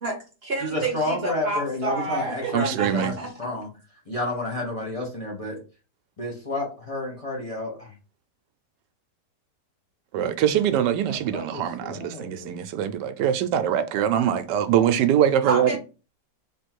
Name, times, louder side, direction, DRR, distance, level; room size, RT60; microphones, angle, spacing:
voice 1, 0.0-3.3 15.4-15.8, right 3 dB, 45° right, 0.9 m, -29 dB
voice 2, 0.6-3.7 4.1-5.6 6.2-7.9 11.0-12.6, left 2 dB, 25° left, 1.0 m, -30 dB
voice 3, 2.5-3.1 10.1-15.8, right 10 dB, 80° right, 1.2 m, -23 dB
3.7 x 3.0 x 4.4 m
omnidirectional pair, 1.8 m